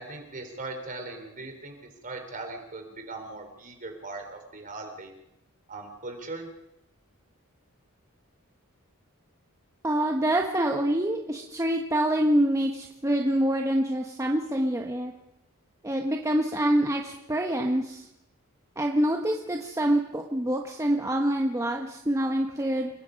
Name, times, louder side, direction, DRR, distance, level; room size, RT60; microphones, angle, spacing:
voice 1, 0.0-5.1 5.7-6.5, right 2 dB, 40° right, 4 dB, 4.0 m, -39 dB
voice 2, 9.8-15.1 15.8-18.1 18.8-22.9, right 1 dB, 15° right, 2 dB, 1.3 m, -26 dB
29.5 x 19.5 x 5.4 m, 0.83 s
head